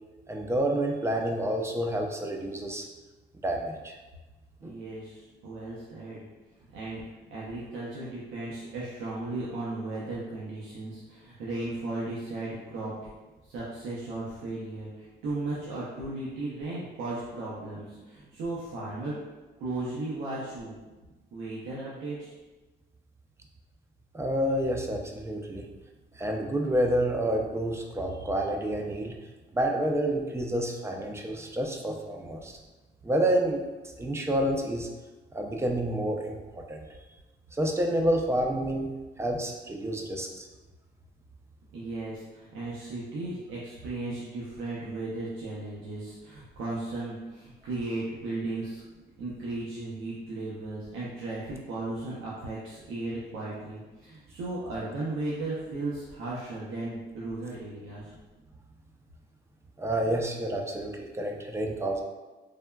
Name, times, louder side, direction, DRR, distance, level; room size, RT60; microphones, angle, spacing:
voice 1, 0.3-2.9 3.4-4.0 4.6-4.8 24.1-25.7 26.1-29.1 29.5-32.6 33.0-34.9 35.3-36.9 37.5-38.9 39.2-40.5 59.8-62.0, right 1 dB, 15° right, 1 dB, 0.4 m, -29 dB
voice 2, 4.6-6.2 6.7-7.0 7.3-12.9 13.4-19.1 19.6-20.8 21.3-22.3 41.7-48.8 49.2-58.0, right 2 dB, 90° right, -7 dB, 0.6 m, -36 dB
3.4 x 2.1 x 2.2 m, 1.2 s
cardioid pair, 90°, 20 cm